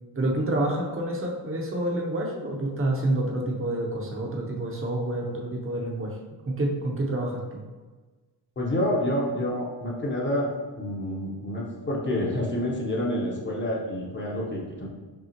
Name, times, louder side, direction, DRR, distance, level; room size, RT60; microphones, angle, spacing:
voice 1, 0.1-6.1 6.6-7.6, right 1 dB, 30° right, -1 dB, 0.8 m, -28 dB
voice 2, 8.6-10.5 10.8-14.9, left 1 dB, 30° left, -2 dB, 0.9 m, -28 dB
5.4 x 2.4 x 2.9 m, 1.3 s
cardioid pair, 110°, 41 cm